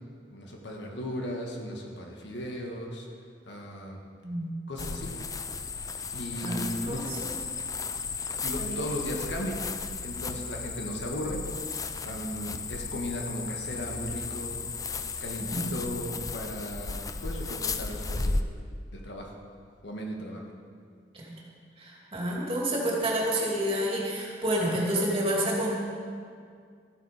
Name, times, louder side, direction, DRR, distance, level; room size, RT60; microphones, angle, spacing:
voice 1, 0.3-3.1 3.5-4.0 4.7-5.1 6.1-7.1 8.4-9.6 10.0-11.4 12.0-14.5 15.2-18.4 18.9-19.4 19.8-20.4, equal, 80° left, 0 dB, 1.8 m, -36 dB
voice 2, 4.2-4.5 6.4-7.4 8.7-8.8 12.0-12.2 15.4-15.6 20.2-20.3 21.1-21.3 21.8-25.8, right 1 dB, 30° right, -3 dB, 2.5 m, -29 dB
sound 1, 4.8-18.4, left 4 dB, 20° left, 0.4 m, -35 dB
13.5 x 8.8 x 5.1 m, 2.2 s
head